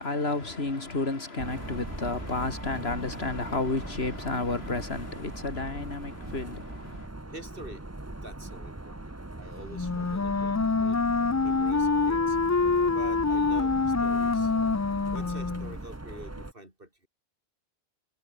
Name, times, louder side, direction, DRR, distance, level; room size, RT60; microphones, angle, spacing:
voice 1, 0.0-7.1, left 3 dB, 75° left, 3.2 m, -31 dB
sound 1, 1.4-16.5, right 2 dB, 15° right, 1.3 m, -40 dB
voice 2, 6.2-7.9 8.2-11.0 11.4-12.4 12.8-14.5 15.1-17.1, right 1 dB, 60° right, 6.7 m, -46 dB
Wind instrument woodwind instrument, 9.7-15.8, left 4 dB, 25° left, 0.4 m, -26 dB
omnidirectional pair, 1.1 m